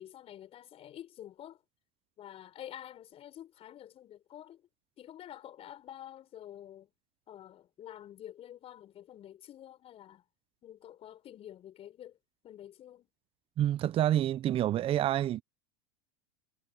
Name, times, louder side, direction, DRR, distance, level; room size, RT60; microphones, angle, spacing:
voice 1, 0.0-1.6 2.2-4.6 5.0-6.9 7.3-10.2 10.6-12.2 12.4-13.1, left 11 dB, 40° left, 6.2 m, -48 dB
voice 2, 13.6-15.4, right 12 dB, 35° right, 0.9 m, -28 dB
hypercardioid pair, 90°, 15 cm